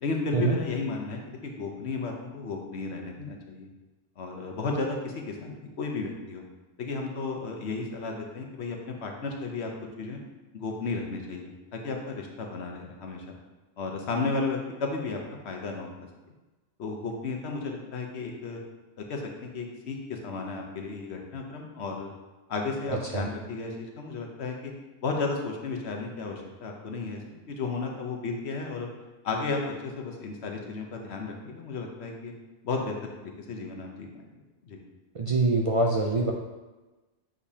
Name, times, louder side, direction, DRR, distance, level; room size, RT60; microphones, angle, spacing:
voice 1, 0.0-3.7 4.2-6.4 6.8-9.7 10.0-10.2 10.5-13.4 13.8-15.2 15.4-15.9 16.8-18.6 19.1-22.1 22.5-24.7 25.0-27.2 27.5-28.9 29.2-32.3 32.6-32.9 33.2-34.2 34.6-34.8, left 3 dB, 85° left, 2 dB, 1.1 m, -33 dB
voice 2, 22.9-23.2 35.1-36.3, right 3 dB, 45° right, 0 dB, 0.4 m, -25 dB
6.7 x 5.0 x 2.8 m, 1.1 s
omnidirectional pair, 1.1 m